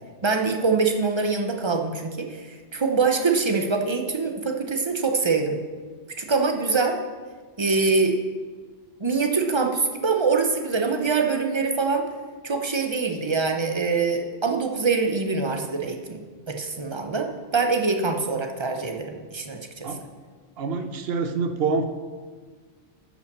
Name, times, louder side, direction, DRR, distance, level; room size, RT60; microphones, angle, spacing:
voice 1, 0.2-5.6 6.2-7.0 7.6-8.2 9.0-12.1 12.4-20.1, right 4 dB, 25° right, 4 dB, 0.7 m, -24 dB
voice 2, 20.6-21.9, right 4 dB, 55° right, 8 dB, 1.0 m, -26 dB
9.9 x 5.6 x 6.7 m, 1.5 s
omnidirectional pair, 1.3 m